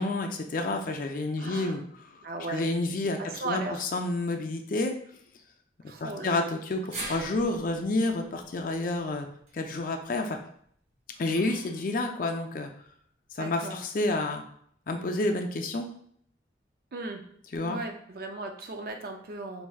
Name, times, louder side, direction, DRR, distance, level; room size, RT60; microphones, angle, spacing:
voice 1, 0.0-1.8 2.5-5.0 6.0-9.3 9.5-10.4 11.2-12.7 13.3-14.4 14.9-15.9 17.5-17.8, left 2 dB, 50° left, 4 dB, 0.4 m, -29 dB
voice 2, 1.4-1.8 2.2-2.8 3.2-3.8 5.9-6.5 11.3-11.7 13.4-13.8 16.9-17.3 17.6-19.7, right 2 dB, 55° right, 4 dB, 0.5 m, -37 dB
sound 1, 6.9-11.2 11.5-11.6 12.8-12.9, right 2 dB, 40° right, 0.9 m, -44 dB
4.4 x 2.6 x 2.3 m, 0.63 s
head